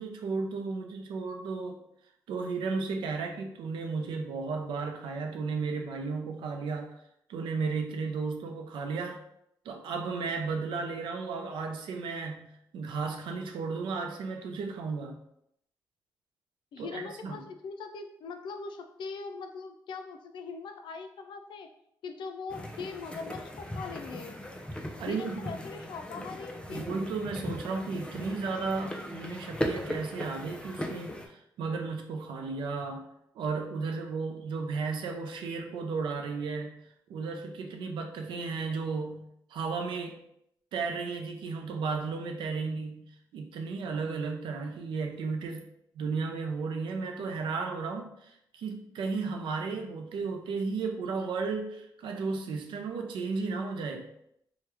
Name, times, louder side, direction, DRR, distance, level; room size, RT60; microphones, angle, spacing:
voice 1, 0.0-1.8 2.3-6.9 7.3-9.2 9.6-15.2 16.8-17.4 25.0-25.5 26.7-33.0 33.4-36.7 37.1-39.2 39.5-40.2 40.7-45.7 46.0-54.1, right 4 dB, 85° right, 4 dB, 0.5 m, -34 dB
voice 2, 16.7-21.7 22.0-24.4 25.1-26.9, left 4 dB, 75° left, 6 dB, 0.4 m, -41 dB
sound 1, 22.5-31.3, equal, 10° left, 0.5 m, -38 dB
2.9 x 2.2 x 3.3 m, 0.75 s
cardioid pair, 70°, 8 cm